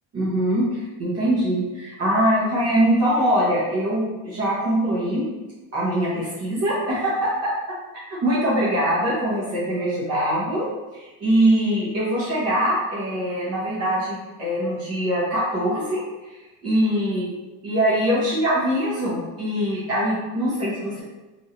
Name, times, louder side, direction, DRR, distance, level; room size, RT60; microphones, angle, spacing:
voice 1, 0.1-5.2 5.7-7.5 8.2-10.7 10.9-16.0 16.3-16.4 16.6-17.3 17.6-21.0, right 1 dB, 45° right, -7 dB, 0.9 m, -22 dB
3.0 x 2.5 x 2.8 m, 1.1 s
cardioid pair, 165°, 36 cm